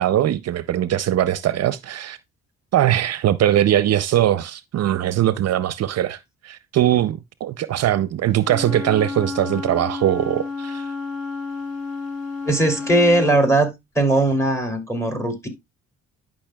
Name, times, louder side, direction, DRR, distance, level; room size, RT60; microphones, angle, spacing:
voice 1, 0.0-2.2 2.7-10.9, right 12 dB, 60° right, 0.5 m, -21 dB
Wind instrument woodwind instrument, 8.4-13.5, left 4 dB, 50° left, 3.6 m, -31 dB
voice 2, 12.5-13.7 13.9-15.5, right 1 dB, 10° left, 2.7 m, -19 dB
11.5 x 5.4 x 2.2 m
cardioid pair, 90°, 30 cm